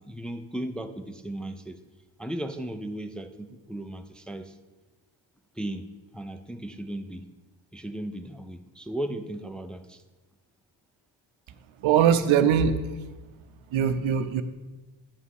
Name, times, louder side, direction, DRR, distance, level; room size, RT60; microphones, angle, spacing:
voice 1, 0.0-1.8 2.2-4.6 5.6-7.3 7.7-10.0, right 1 dB, ahead, 7 dB, 0.4 m, -36 dB
voice 2, 11.8-12.9 13.7-14.4, right 8 dB, 90° right, 11 dB, 0.6 m, -21 dB
8.5 x 5.6 x 4.8 m, 1.2 s
cardioid pair, 80°, 46 cm